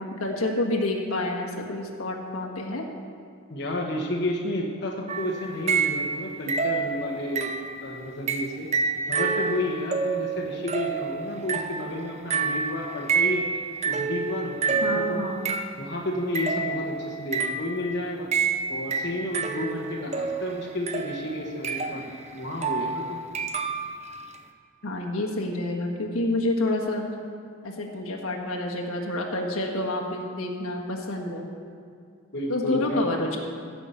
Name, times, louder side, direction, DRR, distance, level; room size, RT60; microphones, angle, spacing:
voice 1, 0.0-2.9 14.8-15.5 24.8-27.1 27.6-31.4 32.5-33.4, left 2 dB, 85° left, -1 dB, 1.6 m, -28 dB
voice 2, 3.5-7.5 7.8-8.7 9.1-13.5 13.8-15.2 15.8-18.3 18.7-23.2 32.3-33.1, left 1 dB, 50° left, -1 dB, 1.2 m, -31 dB
sound 1, 5.1-6.2 6.5-7.8 8.3-15.9 16.3-17.8 18.3-24.1, right 5 dB, 30° right, 0.5 m, -28 dB
15.5 x 6.0 x 7.0 m, 2.3 s
head